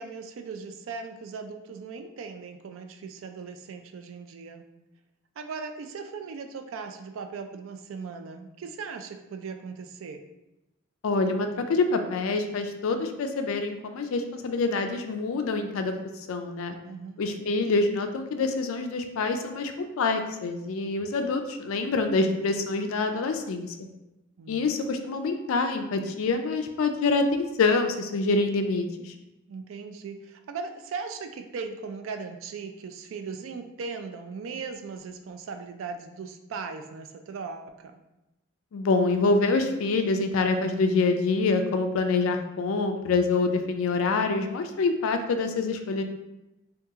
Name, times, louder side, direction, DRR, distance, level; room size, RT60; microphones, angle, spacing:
voice 1, 0.0-4.6 5.4-10.2 16.8-17.2 24.4-24.6 29.5-37.9, right 5 dB, 70° right, 6 dB, 0.3 m, -38 dB
voice 2, 11.0-16.0 16.3-16.8 17.2-23.7 24.5-29.1 38.7-46.0, left 3 dB, 75° left, 7 dB, 0.4 m, -26 dB
2.9 x 2.3 x 3.5 m, 0.94 s
head